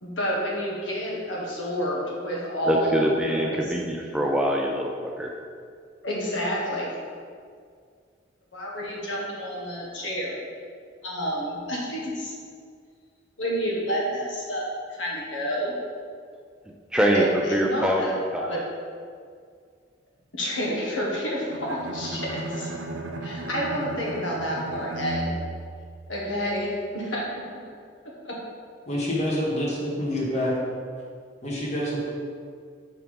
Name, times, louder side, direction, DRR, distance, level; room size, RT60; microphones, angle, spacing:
voice 1, 0.0-3.6 6.0-7.0 8.5-10.4 11.0-12.3 13.4-14.6 15.0-15.8 17.1-18.6 20.3-22.7 23.2-25.3 26.1-27.2 28.2-28.3, equal, 85° left, -4 dB, 1.4 m, -29 dB
voice 2, 2.7-5.3 16.9-18.7, equal, 5° right, 0 dB, 0.4 m, -24 dB
Bowed string instrument, 21.5-26.5, right 1 dB, 85° right, 0.5 m, -35 dB
voice 3, 28.9-30.5 31.4-32.0, left 1 dB, 40° left, -5 dB, 1.5 m, -27 dB
4.8 x 4.4 x 5.2 m, 2.1 s
head